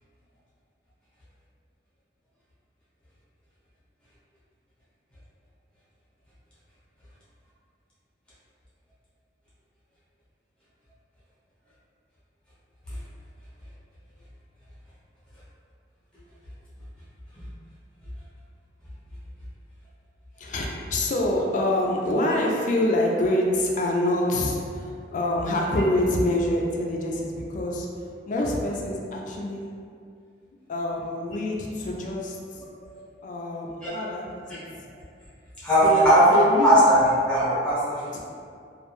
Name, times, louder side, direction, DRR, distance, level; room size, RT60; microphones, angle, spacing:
voice 1, 20.4-27.9 28.3-29.8 30.7-32.7 33.2-34.9 35.8-36.7 38.1-38.2, left 1 dB, 45° left, -1 dB, 0.4 m, -26 dB
voice 2, 35.6-36.3 36.6-38.1, equal, 5° left, -12 dB, 0.9 m, -19 dB
2.3 x 2.1 x 3.0 m, 2.2 s
head